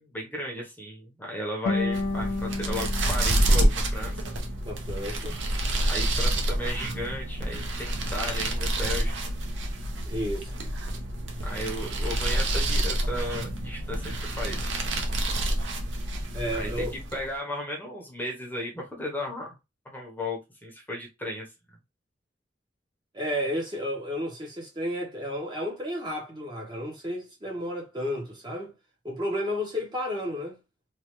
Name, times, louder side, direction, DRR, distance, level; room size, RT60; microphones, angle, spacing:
voice 1, 0.0-4.2 5.9-9.1 11.4-14.7 16.5-16.8 17.1-19.5 19.8-21.5, left 1 dB, 10° left, 0.7 m, -35 dB
sound 1, 1.7-4.8, left 2 dB, 75° left, 0.6 m, -32 dB
sound 2, 1.8-17.3, right 1 dB, 90° right, 0.7 m, -28 dB
voice 2, 4.6-5.4 10.1-10.5 16.3-16.9 23.1-28.7 29.0-30.6, equal, 25° right, 0.7 m, -32 dB
3.1 x 2.2 x 3.0 m
head